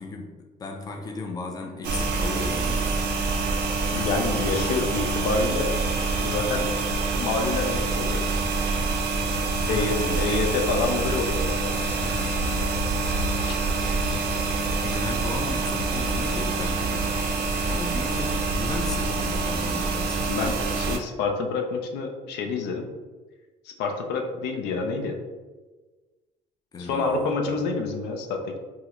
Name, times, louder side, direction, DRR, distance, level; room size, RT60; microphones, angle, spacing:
voice 1, 0.0-3.1 3.8-4.1 4.4-4.8 9.6-10.4 12.0-13.1 14.8-17.2 17.7-20.4 26.7-27.6, left 2 dB, 20° left, 3 dB, 0.5 m, -36 dB
sound 1, 1.8-21.0, right 3 dB, 70° right, 0.5 m, -26 dB
voice 2, 3.9-5.7 6.2-6.7 7.2-8.2 9.7-12.2 13.5-13.6 20.3-22.9 23.6-25.2 26.8-28.6, left 4 dB, 85° left, 3 dB, 0.5 m, -28 dB
3.6 x 2.1 x 2.9 m, 1.3 s
cardioid pair, 110°, 17 cm